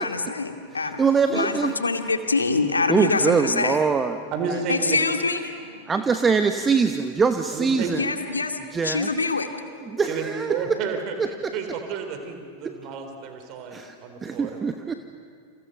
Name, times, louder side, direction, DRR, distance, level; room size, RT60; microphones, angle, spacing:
voice 1, 0.0-1.0 1.3-3.8 4.7-5.9 7.9-9.5, left 3 dB, 75° left, 6 dB, 2.2 m, -25 dB
voice 2, 1.0-1.7 2.9-4.2 5.9-8.1 8.7-9.1 9.9-10.7 11.2-11.5 12.6-12.7 13.7-13.9 14.2-14.9, right 5 dB, 15° right, 8 dB, 1.2 m, -23 dB
voice 3, 4.3-5.0 7.5-8.0 10.1-14.5, right 6 dB, 40° right, 6 dB, 3.9 m, -31 dB
29.5 x 29.5 x 6.7 m, 2.4 s
figure-of-eight pair, 90°, 0 cm